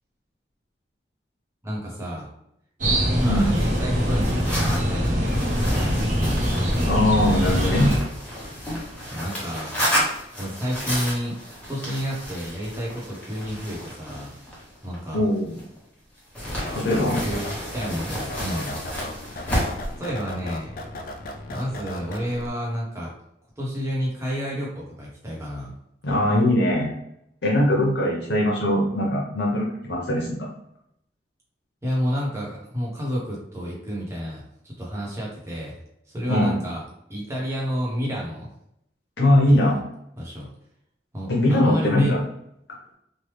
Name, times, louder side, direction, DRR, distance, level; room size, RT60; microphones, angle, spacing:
voice 1, 1.6-2.3 3.1-6.1 9.1-9.8 10.4-11.4 11.7-14.3 14.8-15.2 17.2-18.8 19.8-20.7 21.5-23.1 23.6-25.7 31.8-35.8 36.1-36.8 37.1-38.5 39.5-39.8 40.2-40.5 41.1-42.2, equal, 15° right, -4 dB, 0.9 m, -30 dB
sound 1, 2.8-8.0, equal, 45° right, 0.8 m, -23 dB
sound 2, 3.2-15.8 16.4-20.0, equal, 10° left, 1.0 m, -31 dB
voice 2, 6.9-7.9 15.1-15.6 16.7-17.2 26.0-26.9 27.4-30.5 36.3-36.6 39.2-39.8 41.3-42.2, left 1 dB, 80° left, -4 dB, 0.8 m, -21 dB
sound 3, 16.6-22.5, left 1 dB, 50° left, 0.4 m, -36 dB
3.2 x 2.2 x 3.2 m, 0.76 s
head